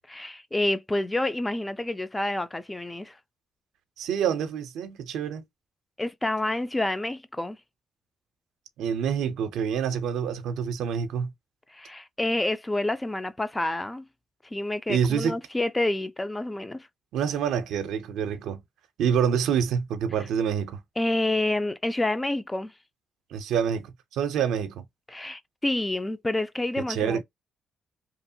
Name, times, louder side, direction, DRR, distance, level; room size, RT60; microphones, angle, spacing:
voice 1, 0.1-3.2 6.0-7.6 11.7-14.1 14.5-16.9 21.0-22.7 25.1-27.2, left 1 dB, 15° left, 0.3 m, -28 dB
voice 2, 4.0-5.4 8.8-11.3 14.9-15.4 17.1-18.6 19.0-20.8 23.3-24.8 26.9-27.2, right 7 dB, 85° right, 0.5 m, -27 dB
2.9 x 2.1 x 2.7 m
cardioid pair, 90°, 0 cm